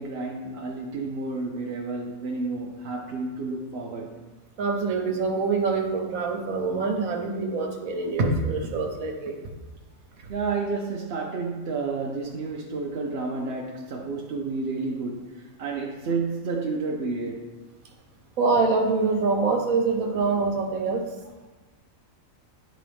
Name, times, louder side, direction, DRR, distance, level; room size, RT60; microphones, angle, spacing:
voice 1, 0.0-4.3 10.3-17.5, right 3 dB, 55° right, -1 dB, 0.8 m, -31 dB
voice 2, 4.6-9.4 18.4-21.1, right 4 dB, 85° right, 2 dB, 1.3 m, -25 dB
9.9 x 3.8 x 3.4 m, 1.2 s
omnidirectional pair, 1.4 m